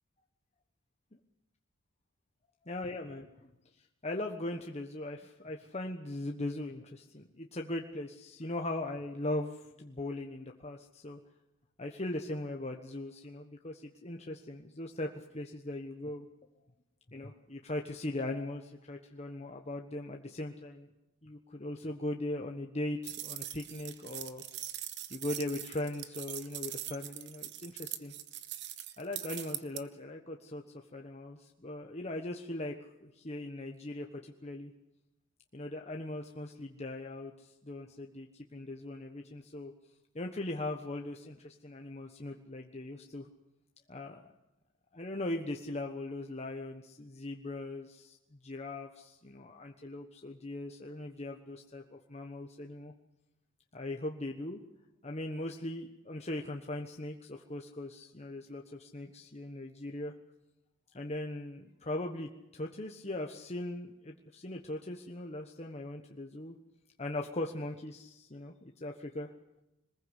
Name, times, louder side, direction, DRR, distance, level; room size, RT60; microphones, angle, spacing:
voice 1, 2.7-3.5 4.0-11.2 11.8-15.1 15.3-16.3 17.1-20.9 21.2-24.4 25.1-28.1 29.0-30.6 30.9-34.7 35.5-39.7 40.1-43.3 43.9-44.2 44.9-52.9 53.7-54.6 55.0-60.1 60.9-66.6 67.0-69.3, left 1 dB, 30° left, 2 dB, 1.3 m, -39 dB
sound 1, 23.0-29.8, right 12 dB, 60° right, 1.2 m, -42 dB
23.0 x 20.5 x 8.2 m, 0.92 s
head